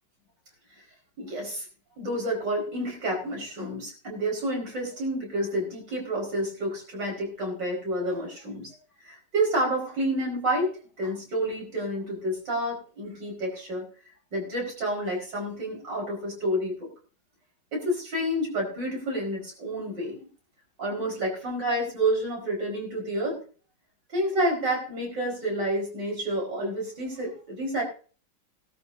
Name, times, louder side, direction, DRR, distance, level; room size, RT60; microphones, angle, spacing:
voice 1, 1.2-1.7 2.0-8.7 9.0-10.7 11.0-13.9 14.3-16.9 17.7-20.2 20.8-23.4 24.1-27.8, right 1 dB, 85° right, -1 dB, 5.6 m, -29 dB
19.0 x 12.5 x 2.7 m, 0.40 s
omnidirectional pair, 1.9 m